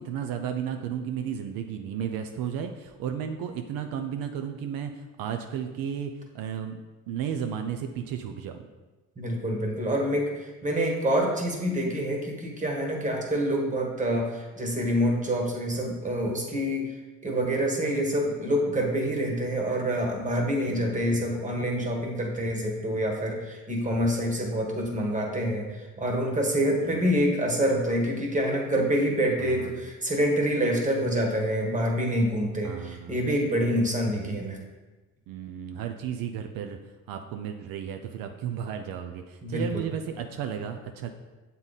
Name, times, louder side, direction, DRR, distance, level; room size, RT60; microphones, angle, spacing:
voice 1, 0.0-6.8 7.1-8.6 20.7-21.4 26.8-27.2 29.4-29.9 32.6-33.2 35.3-36.8 37.1-41.1, right 8 dB, 80° right, 6 dB, 0.5 m, -34 dB
voice 2, 9.2-10.3 10.6-16.9 17.2-25.7 26.0-34.6 39.4-39.8, equal, 20° right, 0 dB, 1.4 m, -26 dB
7.2 x 3.8 x 4.0 m, 1.2 s
cardioid pair, 95°, 34 cm